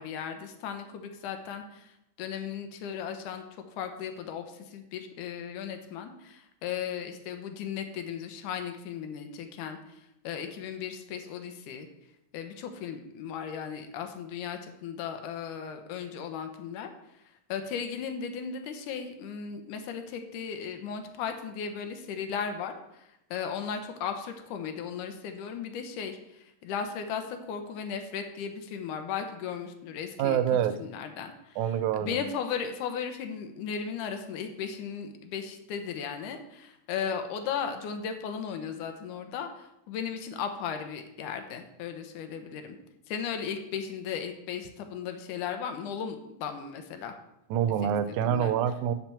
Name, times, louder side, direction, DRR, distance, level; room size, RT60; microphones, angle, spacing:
voice 1, 0.0-1.9 2.2-9.8 10.2-11.9 12.3-16.9 17.5-31.6 32.0-42.8 43.1-47.1 47.8-48.5, left 7 dB, 80° left, 6 dB, 2.5 m, -36 dB
voice 2, 30.2-30.7 31.6-32.2 47.5-48.9, right 9 dB, 80° right, 11 dB, 2.0 m, -26 dB
9.0 x 5.9 x 7.6 m, 0.84 s
omnidirectional pair, 3.6 m